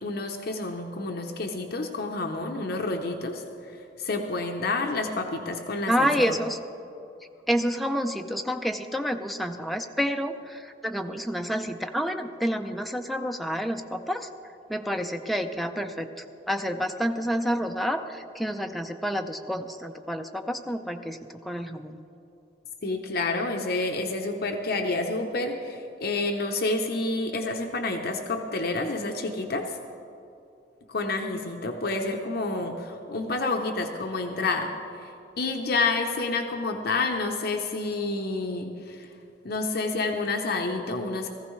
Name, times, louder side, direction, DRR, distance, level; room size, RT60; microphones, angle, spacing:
voice 1, 0.0-3.4 3.7-6.4 22.8-29.8 30.9-34.7 35.0-35.1 35.4-39.1 39.4-41.3, left 3 dB, 60° left, 3 dB, 0.8 m, -29 dB
voice 2, 5.9-6.6 7.5-14.3 14.7-22.0, equal, ahead, 5 dB, 0.5 m, -29 dB
18.0 x 15.0 x 3.2 m, 2.7 s
head